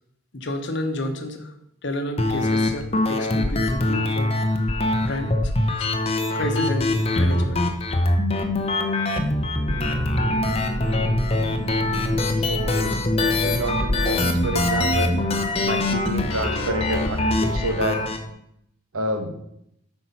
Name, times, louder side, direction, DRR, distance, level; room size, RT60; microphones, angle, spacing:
voice 1, 0.3-1.5 1.8-4.3 5.0-5.9 6.3-7.6, left 1 dB, 55° left, 6 dB, 1.0 m, -30 dB
sound 1, 2.2-18.2, left 2 dB, 30° left, 0.7 m, -23 dB
sound 2, 9.6-18.3, right 1 dB, 5° right, 1.2 m, -32 dB
voice 2, 11.9-12.9 13.2-15.1 15.6-18.0 18.9-19.4, right 1 dB, 85° right, 5 dB, 1.1 m, -29 dB
8.2 x 4.4 x 5.7 m, 0.76 s
head